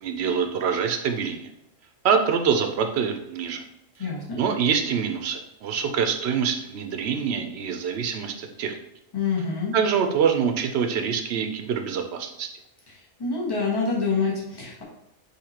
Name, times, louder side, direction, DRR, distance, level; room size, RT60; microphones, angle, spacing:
voice 1, 0.0-1.5 2.0-3.6 4.4-8.8 9.7-12.5, right 6 dB, 65° right, 5 dB, 0.8 m, -25 dB
voice 2, 4.0-4.4 9.1-9.7 13.2-14.8, left 4 dB, 20° left, -5 dB, 1.2 m, -26 dB
6.5 x 2.8 x 2.9 m, 0.82 s
omnidirectional pair, 1.3 m